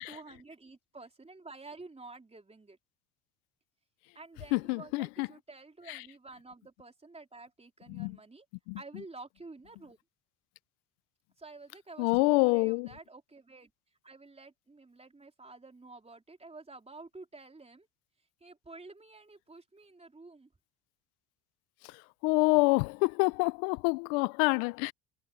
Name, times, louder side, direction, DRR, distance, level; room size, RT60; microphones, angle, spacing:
voice 1, 0.0-2.8 4.1-8.5 8.8-10.0 11.4-13.7 14.0-17.9 18.4-20.5, right 3 dB, 15° right, 3.7 m, -50 dB
voice 2, 4.5-5.3 5.9-6.0 7.9-8.2 8.7-8.8 12.0-12.9 22.2-24.9, left 27 dB, 85° left, 0.6 m, -27 dB
supercardioid pair, 95°, 42 cm